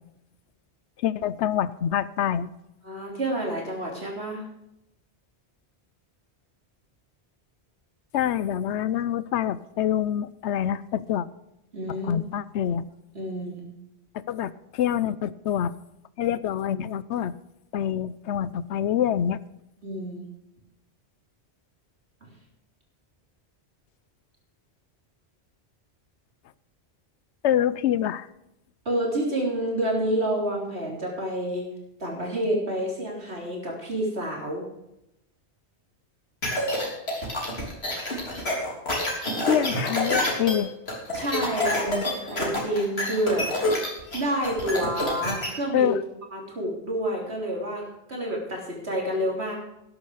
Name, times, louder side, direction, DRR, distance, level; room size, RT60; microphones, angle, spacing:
voice 1, 1.0-2.5 8.1-11.3 12.1-12.9 14.3-15.7 16.2-17.3 17.7-19.4 27.4-28.3 39.5-40.7 41.9-42.0 45.7-46.0, left 10 dB, 90° left, 18 dB, 0.9 m, -26 dB
voice 2, 2.8-4.4 11.7-12.1 13.1-13.7 19.8-20.3 22.2-22.3 28.9-31.6 32.0-34.6 41.1-43.8 44.1-46.0 46.3-49.5, right 1 dB, 70° right, -1 dB, 3.8 m, -29 dB
sound 1, 36.4-45.5, left 1 dB, 65° left, 3.6 m, -27 dB
13.0 x 10.5 x 4.9 m, 0.87 s
omnidirectional pair, 1.1 m